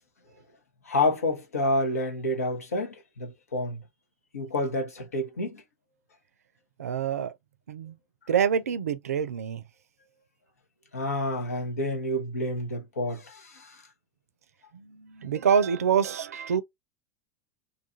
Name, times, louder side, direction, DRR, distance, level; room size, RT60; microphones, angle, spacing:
voice 1, 0.9-3.8 4.3-5.6 10.9-13.8, left 1 dB, 85° left, 0.9 m, -29 dB
voice 2, 6.8-7.3 7.7-8.0 8.3-9.6 14.7-16.6, right 7 dB, 80° right, 0.4 m, -26 dB
2.6 x 2.4 x 2.5 m
hypercardioid pair, 90°, 8 cm